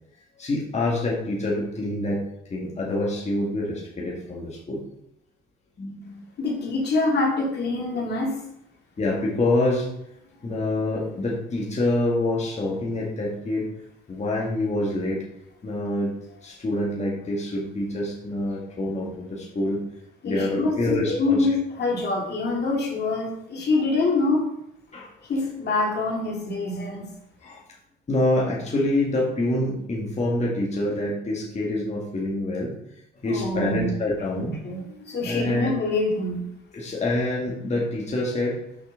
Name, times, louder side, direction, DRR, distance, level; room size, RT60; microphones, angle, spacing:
voice 1, 0.4-2.2 2.5-4.9 5.8-6.2 9.0-9.9 10.4-13.7 14.1-15.2 15.6-19.8 20.2-21.4 24.9-25.1 27.4-27.6 28.1-32.8 33.2-34.6 35.2-35.7 36.7-38.6, left 1 dB, 35° left, -3 dB, 1.9 m, -26 dB
voice 2, 6.4-8.4 20.2-24.4 25.3-27.1 33.2-33.9 34.3-36.4, left 3 dB, 55° left, -1 dB, 2.3 m, -25 dB
6.4 x 5.6 x 3.8 m, 0.80 s
cardioid pair, 90°, 20 cm